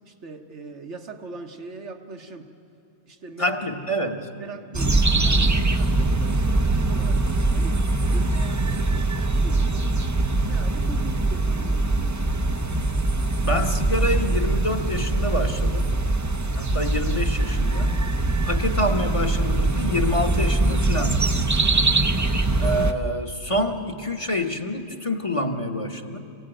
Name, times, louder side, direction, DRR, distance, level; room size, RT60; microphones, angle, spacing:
voice 1, 0.1-2.5 3.1-3.6 4.0-4.1 4.4-7.8 8.1-9.6 10.4-12.6, right 4 dB, 80° right, 3 dB, 1.7 m, -40 dB
voice 2, 3.4-4.3 13.4-15.9 16.6-18.0 18.4-21.4 22.6-26.2, left 1 dB, 30° left, 4 dB, 1.1 m, -27 dB
sound 1, 4.7-22.9, right 2 dB, 20° right, 0.5 m, -22 dB
26.0 x 16.5 x 9.1 m, 2.7 s
omnidirectional pair, 1.2 m